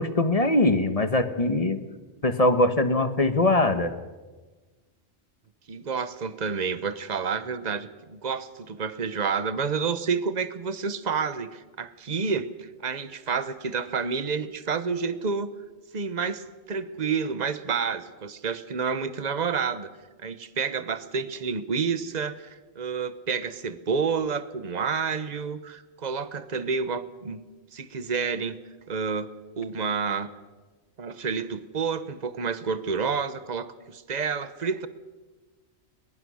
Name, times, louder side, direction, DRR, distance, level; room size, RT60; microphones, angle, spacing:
voice 1, 0.0-1.8 2.2-3.9, left 2 dB, 35° left, 10 dB, 1.3 m, -22 dB
voice 2, 5.7-15.5 15.9-19.9 20.2-27.4 27.7-28.6 28.9-29.3 29.6-30.3 31.0-34.9, right 5 dB, 40° right, 13 dB, 1.1 m, -29 dB
22.0 x 21.0 x 6.4 m, 1.2 s
omnidirectional pair, 1.2 m